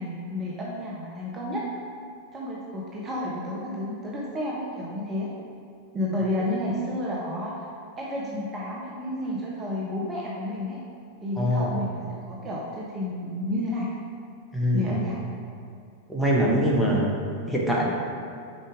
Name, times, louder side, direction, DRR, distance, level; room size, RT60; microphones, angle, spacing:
voice 1, 0.0-1.6 2.3-5.3 5.9-7.6 8.0-10.8 11.2-13.9 14.7-15.2, left 1 dB, 20° right, -5 dB, 0.8 m, -31 dB
voice 2, 11.4-11.7 14.5-14.9 16.1-17.1 17.5-17.8, equal, ahead, -4 dB, 1.0 m, -23 dB
5.1 x 4.3 x 4.7 m, 2.4 s
figure-of-eight pair, 90°, 0 cm